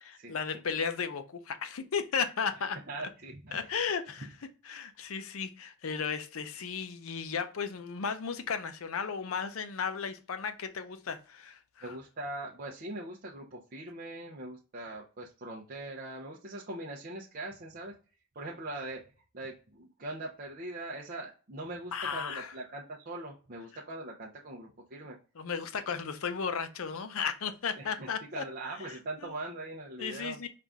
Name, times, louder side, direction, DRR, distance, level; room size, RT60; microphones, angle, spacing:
voice 1, 0.0-2.8 3.5-4.3 4.6-11.9 21.9-22.5 25.4-28.4 29.2-29.3 30.0-30.5, left 6 dB, 65° left, 0.5 m, -34 dB
voice 2, 2.9-3.7 11.8-17.9 18.3-19.0 19.3-25.2 27.8-30.4, right 2 dB, 45° right, 0.7 m, -41 dB
5.6 x 2.5 x 3.5 m
head